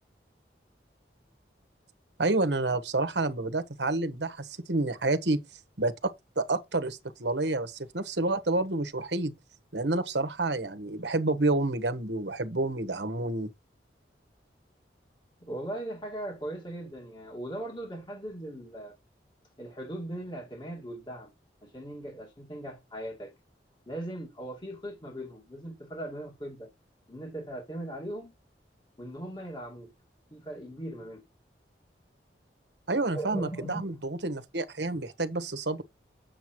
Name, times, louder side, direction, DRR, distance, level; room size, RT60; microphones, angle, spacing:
voice 1, 2.2-5.4 5.8-9.3 9.7-13.5 32.9-35.8, right 2 dB, 75° right, 1.3 m, -29 dB
voice 2, 15.4-19.0 19.6-21.3 21.6-23.3 23.9-26.7 27.1-28.3 29.0-29.9 30.3-31.2 33.1-33.9, right 1 dB, 25° left, 2.2 m, -39 dB
9.2 x 7.0 x 3.2 m
head